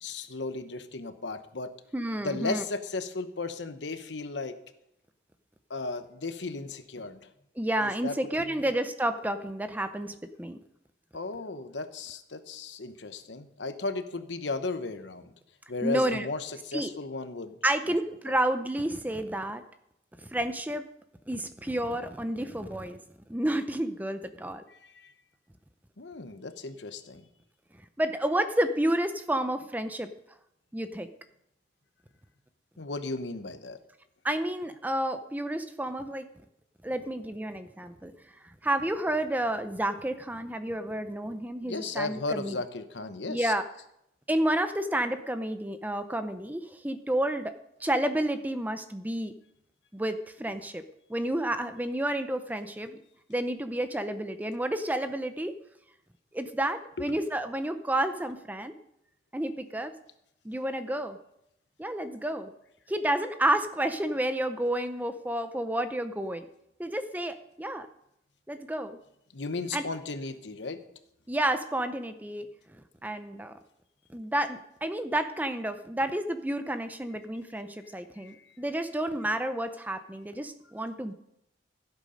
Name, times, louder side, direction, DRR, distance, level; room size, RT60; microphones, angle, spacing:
voice 1, 0.0-1.7 2.2-4.6 5.7-7.3 7.8-8.6 11.1-15.3 15.7-17.5 18.3-18.4 24.7-25.1 26.0-27.2 32.8-33.8 41.6-43.5 57.0-57.2 69.3-70.8 78.2-78.6, left 3 dB, 80° left, 9 dB, 1.0 m, -35 dB
voice 2, 1.9-2.6 7.6-10.6 15.8-16.3 16.7-16.9 17.6-19.6 20.3-20.9 21.3-23.0 23.3-24.6 28.0-30.1 30.7-31.1 34.2-36.3 36.8-38.1 38.6-42.6 43.3-43.6 44.3-49.3 49.9-50.8 51.1-53.0 53.3-55.6 56.3-58.7 59.3-59.9 60.4-61.2 61.8-62.5 62.9-66.5 66.8-67.9 68.5-69.0 69.7-69.8 71.3-72.5 73.0-73.5 74.1-81.1, right 1 dB, 10° right, 9 dB, 0.6 m, -30 dB
16.0 x 8.2 x 5.2 m, 0.80 s
head